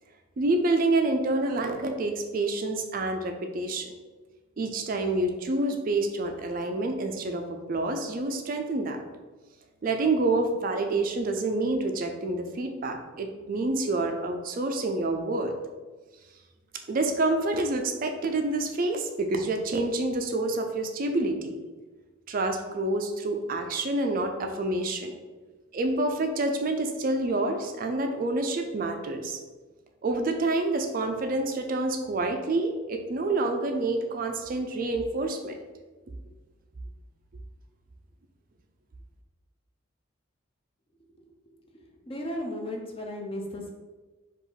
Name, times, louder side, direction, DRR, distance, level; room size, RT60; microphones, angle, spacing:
voice 1, 0.4-3.9 4.6-9.0 9.8-15.5 16.9-21.6 22.3-25.2 25.7-29.4 30.0-35.6, right 2 dB, 45° right, 5 dB, 0.4 m, -28 dB
voice 2, 42.0-43.7, left 1 dB, 25° left, 1 dB, 0.6 m, -34 dB
4.8 x 2.4 x 4.0 m, 1.3 s
head